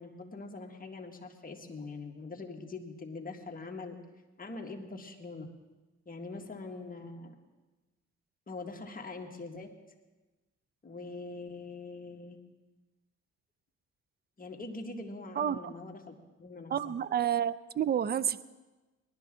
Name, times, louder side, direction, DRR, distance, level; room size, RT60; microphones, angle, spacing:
voice 1, 0.0-4.0 4.4-5.5 6.1-7.3 8.5-9.7 10.8-12.4 14.4-17.0, left 3 dB, 30° left, 2 dB, 1.7 m, -43 dB
voice 2, 15.4-15.7 16.7-18.4, right 9 dB, 35° right, 17 dB, 0.5 m, -30 dB
19.5 x 12.0 x 3.7 m, 1.2 s
cardioid pair, 90°, 30 cm